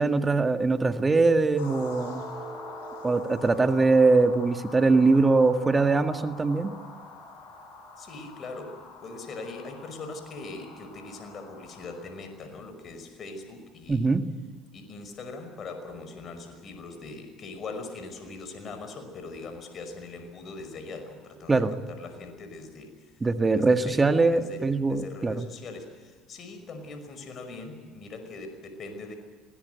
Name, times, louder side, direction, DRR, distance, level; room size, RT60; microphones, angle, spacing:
voice 1, 0.0-2.2 3.0-6.7 13.9-14.2 21.5-21.7 23.2-25.4, right 3 dB, 20° right, 8 dB, 1.8 m, -22 dB
sound 1, 1.5-12.3, left 2 dB, 85° left, 6.3 m, -44 dB
voice 2, 8.0-14.1 14.7-22.9 23.5-29.1, left 3 dB, 45° left, 7 dB, 5.5 m, -41 dB
24.5 x 18.0 x 8.1 m, 1.4 s
supercardioid pair, 80°, 0 cm